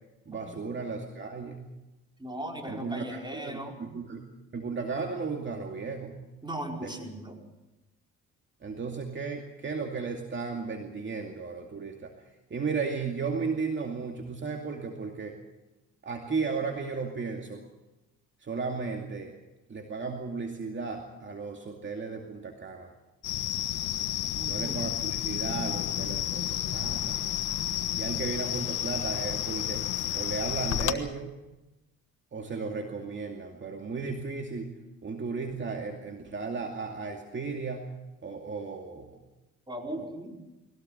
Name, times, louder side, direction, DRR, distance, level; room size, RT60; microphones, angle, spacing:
voice 1, 0.3-1.7 2.6-4.2 4.5-6.2 6.8-6.9 8.6-12.1 12.5-15.4 16.0-17.6 18.4-19.3 19.7-22.9 24.5-27.2 28.0-31.3 32.3-34.7 35.0-37.9 38.2-39.2, right 4 dB, 40° right, 3 dB, 2.4 m, -35 dB
voice 2, 2.2-3.8 6.4-7.3 24.3-24.8 39.7-40.3, right 1 dB, 15° right, 2 dB, 4.8 m, -37 dB
sound 1, 23.2-30.9, left 12 dB, 85° left, 1.3 m, -31 dB
21.5 x 17.5 x 8.0 m, 1.0 s
cardioid pair, 90°, 30 cm